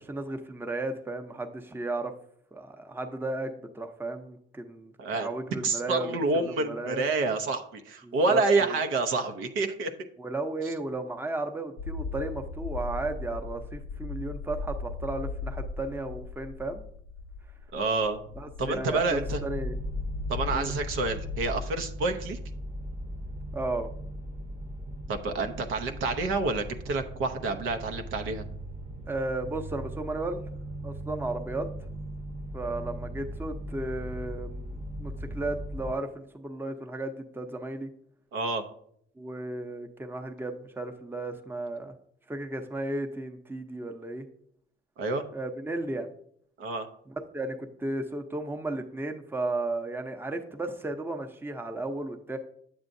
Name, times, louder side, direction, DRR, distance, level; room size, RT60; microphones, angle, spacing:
voice 1, 0.0-2.1 2.5-7.0 8.0-8.8 10.2-16.8 18.4-19.8 20.4-20.7 23.5-23.9 29.1-30.4 30.8-31.7 32.5-37.9 39.2-41.9 42.3-44.2 45.3-46.1 47.1-52.4, right 2 dB, 10° right, 5 dB, 0.7 m, -34 dB
voice 2, 5.6-9.9 17.7-18.2 18.6-19.4 20.3-22.4 25.1-28.4 38.3-38.6 45.0-45.2 46.6-46.9, right 3 dB, 80° right, 6 dB, 0.8 m, -28 dB
sound 1, 11.8-21.6, left 3 dB, 90° left, 0.6 m, -37 dB
sound 2, 19.2-35.9, equal, 35° right, 0.9 m, -39 dB
8.7 x 7.3 x 2.6 m, 0.67 s
cardioid pair, 90°, 20 cm